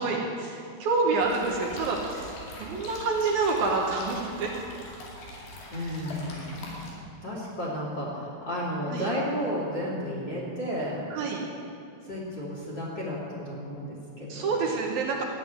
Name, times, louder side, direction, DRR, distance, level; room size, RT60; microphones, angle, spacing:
voice 1, 0.0-2.3 2.6-4.5 5.8-5.9 8.9-9.1 11.1-11.4 14.3-15.2, right 3 dB, 65° right, -1 dB, 2.7 m, -27 dB
sound 1, 1.2-6.9, left 1 dB, 85° left, 4.6 m, -43 dB
voice 2, 5.7-11.2 12.0-14.6, equal, 30° left, -5 dB, 3.0 m, -33 dB
14.0 x 8.6 x 9.7 m, 2.6 s
omnidirectional pair, 4.8 m